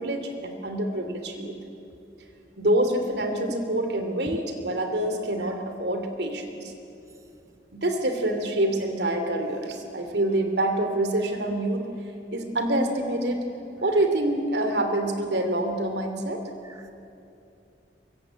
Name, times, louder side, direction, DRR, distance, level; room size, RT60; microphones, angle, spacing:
voice 1, 0.0-1.6 2.6-6.7 7.7-11.8 12.3-13.4 13.8-16.4, right 1 dB, 70° right, 6 dB, 2.9 m, -26 dB
voice 2, 4.3-4.4 5.4-5.5 16.6-16.9, right 1 dB, 15° right, 7 dB, 0.8 m, -42 dB
24.0 x 22.0 x 9.1 m, 2.8 s
head